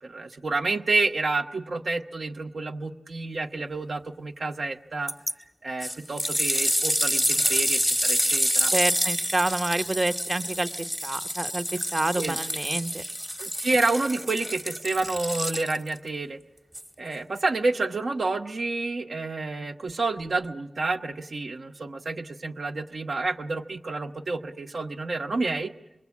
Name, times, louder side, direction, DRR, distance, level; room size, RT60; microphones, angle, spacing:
voice 1, 0.0-5.1 5.6-8.7 12.2-12.4 13.4-16.4 17.0-25.7, right 3 dB, 80° right, 4 dB, 0.9 m, -29 dB
sound 1, 5.1-5.3 5.8-16.0 16.7-16.8, equal, 5° right, 0.8 m, -27 dB
voice 2, 8.7-10.7 11.0-13.0, right 2 dB, 35° right, 10 dB, 0.8 m, -28 dB
26.5 x 21.5 x 8.4 m, 0.98 s
wide cardioid pair, 75°, 0 cm